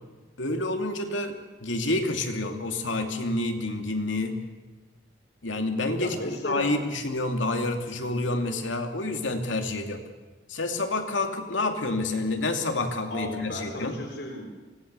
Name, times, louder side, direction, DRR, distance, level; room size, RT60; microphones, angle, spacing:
voice 1, 0.4-4.4 5.4-10.0 10.5-14.0, left 2 dB, 90° left, 4 dB, 2.6 m, -28 dB
voice 2, 6.0-6.7 12.3-12.4 13.1-14.5, left 1 dB, 65° left, 1 dB, 3.8 m, -35 dB
25.0 x 19.0 x 6.9 m, 1.3 s
head